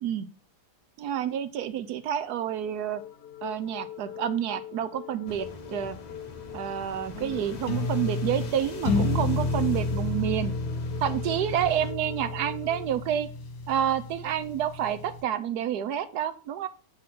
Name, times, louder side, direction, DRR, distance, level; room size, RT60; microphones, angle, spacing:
voice 1, 1.0-3.0 3.4-6.0 6.5-10.5 11.0-13.3 13.7-16.7, right 10 dB, 75° right, 12 dB, 1.1 m, -29 dB
sound 1, 2.8-12.9, left 11 dB, 80° left, 1.2 m, -43 dB
sound 2, 5.3-11.9, left 2 dB, 35° left, 0.7 m, -43 dB
sound 3, 7.1-15.2, left 3 dB, 60° left, 1.5 m, -31 dB
7.4 x 4.2 x 6.0 m, 0.38 s
omnidirectional pair, 1.8 m